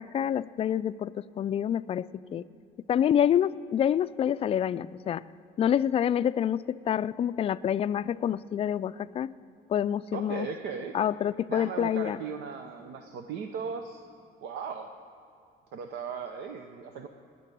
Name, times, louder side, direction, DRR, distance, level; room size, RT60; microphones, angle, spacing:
voice 1, 0.0-2.4 2.9-5.2 5.6-9.3 9.7-10.5 10.9-12.2, left 9 dB, 35° left, 14 dB, 0.3 m, -27 dB
voice 2, 10.1-11.0 11.5-14.0 14.4-14.9 15.7-17.1, right 6 dB, 80° right, 6 dB, 0.8 m, -37 dB
19.0 x 6.8 x 9.8 m, 2.7 s
cardioid pair, 110°, 17 cm